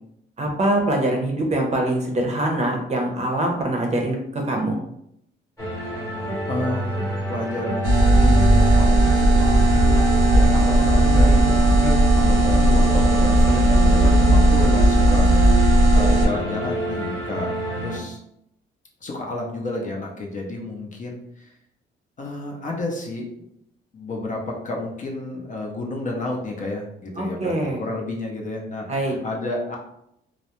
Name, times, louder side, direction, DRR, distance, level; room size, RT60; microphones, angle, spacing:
voice 1, 0.4-4.2 4.4-4.8 27.2-27.8 28.9-29.1, right 1 dB, 35° right, 1 dB, 0.6 m, -23 dB
sound 1, 5.6-18.0, left 1 dB, 15° left, 1.0 m, -27 dB
voice 2, 6.5-10.0 10.3-18.2 19.0-21.5 22.2-23.4 23.9-29.8, left 2 dB, 40° left, 0 dB, 0.6 m, -31 dB
sound 2, 7.8-16.3, right 1 dB, 80° right, 0.6 m, -16 dB
2.3 x 2.0 x 2.9 m, 0.77 s
cardioid pair, 90°, 20 cm